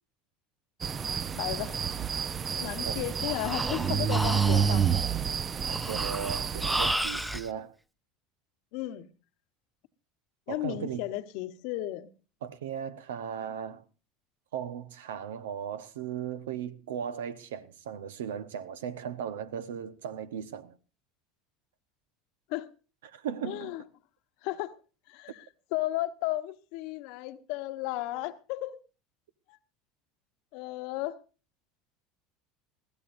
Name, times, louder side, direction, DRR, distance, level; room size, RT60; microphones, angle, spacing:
sound 1, 0.8-6.9, right 7 dB, 35° right, 0.7 m, -29 dB
voice 1, 1.4-1.7 2.6-5.0 8.7-9.1 10.5-12.1 22.5-22.7 23.4-23.8 24.4-24.8 25.1-25.4 25.7-28.8 30.5-31.2, left 16 dB, 70° left, 1.0 m, -34 dB
Breathing, 2.9-7.5, right 1 dB, 5° right, 0.9 m, -33 dB
voice 2, 5.7-7.7 10.5-11.0 12.4-13.8 14.5-20.8 23.0-23.7, right 8 dB, 85° right, 1.1 m, -37 dB
20.5 x 15.5 x 2.6 m
hypercardioid pair, 85°, 0 cm